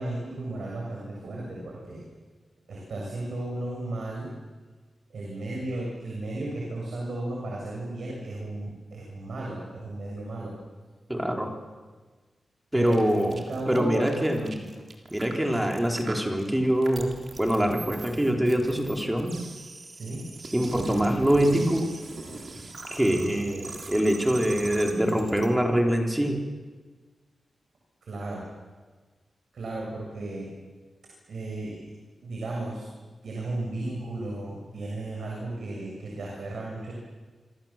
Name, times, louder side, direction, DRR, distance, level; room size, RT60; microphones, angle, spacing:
voice 1, 0.0-2.0 2.7-4.3 5.1-10.5 12.7-14.4 19.9-20.3 28.0-28.5 29.5-30.5 31.3-31.8 32.2-32.9 33.2-36.9, right 2 dB, 70° right, -2 dB, 7.3 m, -34 dB
voice 2, 11.1-11.5 12.7-13.4 13.7-14.7 15.1-17.1 17.4-19.3 20.5-21.9 22.6-22.7 22.9-26.4, equal, 10° right, 2 dB, 3.8 m, -24 dB
sound 1, 12.9-25.5, right 3 dB, 45° right, 3.6 m, -41 dB
27.5 x 25.5 x 7.4 m, 1.4 s
wide cardioid pair, 130°, 0 cm